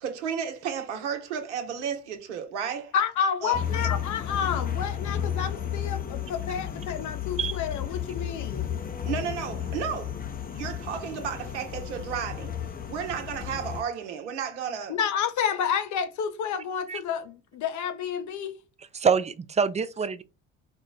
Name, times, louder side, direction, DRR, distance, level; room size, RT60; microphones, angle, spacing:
voice 1, 0.0-2.9 3.4-3.6 9.0-10.2 10.5-12.5 12.9-15.0, right 7 dB, 90° right, 0.9 m, -33 dB
voice 2, 2.9-8.7 14.9-18.6, left 7 dB, 60° left, 0.8 m, -30 dB
sound 1, 3.5-13.8, left 9 dB, 25° left, 0.6 m, -33 dB
voice 3, 18.9-20.2, right 6 dB, 20° right, 0.5 m, -25 dB
4.3 x 2.1 x 3.8 m
hypercardioid pair, 65°, 34 cm